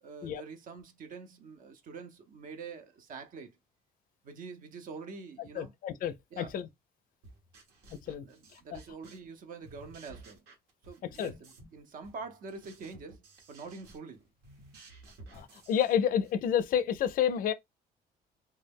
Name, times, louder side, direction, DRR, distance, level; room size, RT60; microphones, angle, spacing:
voice 1, 0.0-3.6 4.2-5.7 6.3-6.6 8.2-10.4 10.8-13.2 13.5-14.2, right 4 dB, 55° right, 0.7 m, -45 dB
voice 2, 5.6-6.7 8.1-8.3 8.5-8.8 11.2-11.3 15.3-17.5, left 9 dB, 55° left, 0.4 m, -30 dB
sound 1, 7.2-9.4 9.6-11.8 12.0-16.4, right 2 dB, 85° right, 1.0 m, -54 dB
2.2 x 2.0 x 3.4 m
cardioid pair, 110°, 17 cm